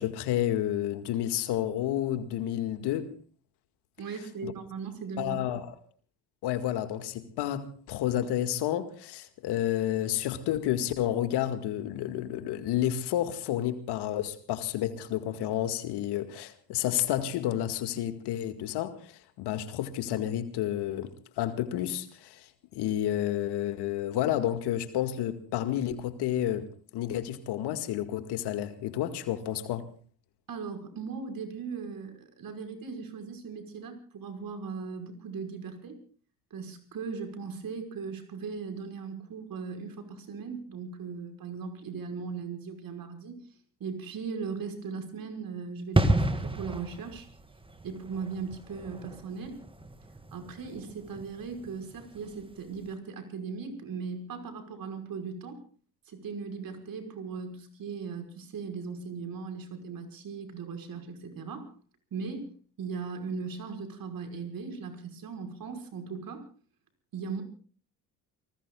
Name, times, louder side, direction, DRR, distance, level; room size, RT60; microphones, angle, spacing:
voice 1, 0.0-3.1 4.4-4.5 5.2-5.7 6.4-29.9, left 12 dB, 60° left, 2.1 m, -30 dB
voice 2, 4.0-5.4 30.5-36.0 36.5-43.4 43.8-47.3 47.8-49.6 50.3-55.6 56.1-61.7 62.1-62.5 62.8-66.4 67.1-67.4, right 5 dB, 50° right, 5.6 m, -38 dB
sound 1, 45.9-52.4 52.7-52.9, right 1 dB, 10° right, 2.1 m, -31 dB
29.5 x 19.5 x 2.4 m
hypercardioid pair, 60°, 45 cm